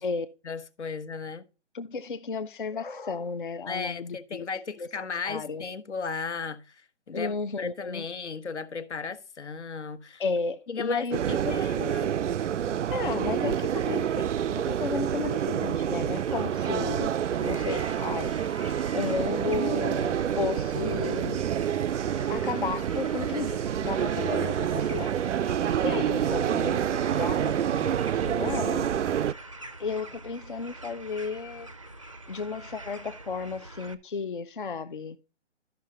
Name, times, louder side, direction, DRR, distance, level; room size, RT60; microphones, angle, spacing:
voice 1, 0.4-1.4 3.7-10.2 10.7-12.1 24.4-24.5, left 5 dB, 75° left, 1.3 m, -36 dB
voice 2, 1.7-4.5 4.8-4.9 5.2-5.6 7.1-8.1 10.2-11.6 12.9-17.1 17.4-18.3 18.9-21.4 22.3-25.1 25.8-28.9 29.8-31.7 32.3-35.2, left 5 dB, 45° left, 0.6 m, -33 dB
sound 1, 11.1-29.3, right 9 dB, 90° right, 0.5 m, -28 dB
sound 2, 16.1-33.9, right 2 dB, 30° right, 0.5 m, -45 dB
13.0 x 5.7 x 3.8 m
hypercardioid pair, 170°, 35 cm